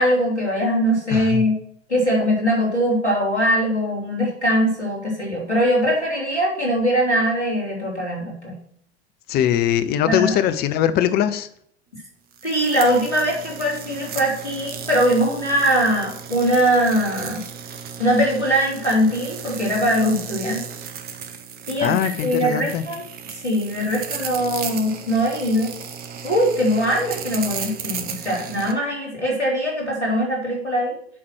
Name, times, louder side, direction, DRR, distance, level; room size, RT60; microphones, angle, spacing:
voice 1, 0.0-1.6 1.9-8.6 10.0-10.4 12.4-17.4 18.0-20.6 21.7-23.0 23.4-25.7 26.2-30.9, equal, 90° left, -3 dB, 4.1 m, -21 dB
voice 2, 1.1-1.4 9.3-11.5 21.8-22.8, left 10 dB, 30° left, 11 dB, 0.7 m, -21 dB
sound 1, 12.3-28.7, right 7 dB, 30° right, 1.1 m, -35 dB
7.7 x 5.8 x 6.3 m, 0.63 s
figure-of-eight pair, 90°, 33 cm